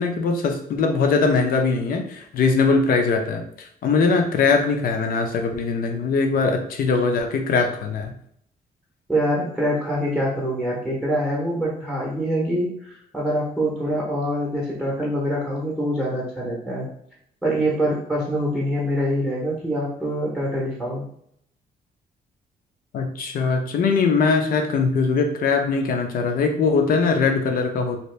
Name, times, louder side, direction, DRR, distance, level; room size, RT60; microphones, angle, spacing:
voice 1, 0.0-3.4 3.8-8.1 22.9-28.0, left 4 dB, 65° left, 4 dB, 0.6 m, -21 dB
voice 2, 9.1-16.9 17.4-21.0, equal, 5° right, -4 dB, 0.8 m, -25 dB
2.8 x 2.6 x 3.2 m, 0.69 s
cardioid pair, 135°, 16 cm